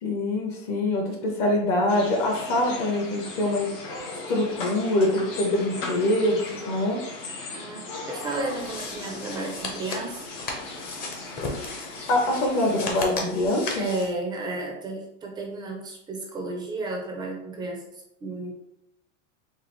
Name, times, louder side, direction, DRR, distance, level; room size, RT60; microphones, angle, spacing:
voice 1, 0.0-3.7 4.3-7.0 12.1-13.9, left 1 dB, 45° left, 1 dB, 0.9 m, -24 dB
sound 1, 1.9-13.0, left 3 dB, 70° left, 1.2 m, -38 dB
voice 2, 7.5-10.2 13.8-17.8 18.2-18.5, right 2 dB, 10° right, 0 dB, 0.3 m, -33 dB
sound 2, 8.2-14.1, left 3 dB, 25° left, 0.6 m, -36 dB
4.0 x 2.4 x 3.0 m, 0.83 s
supercardioid pair, 130°, 38 cm